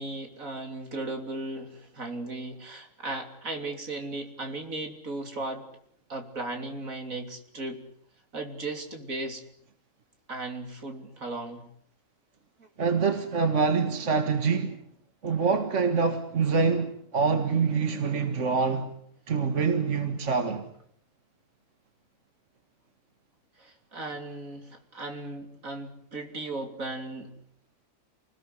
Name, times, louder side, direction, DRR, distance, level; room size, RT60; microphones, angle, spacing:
voice 1, 0.0-5.7 6.1-7.8 8.3-9.4 10.3-11.7 12.6-12.7 23.6-27.3, right 2 dB, 80° right, 3.8 m, -36 dB
voice 2, 12.8-14.8 15.2-18.9 19.3-20.7, right 5 dB, 60° right, 2.1 m, -25 dB
28.5 x 20.0 x 8.2 m
omnidirectional pair, 1.4 m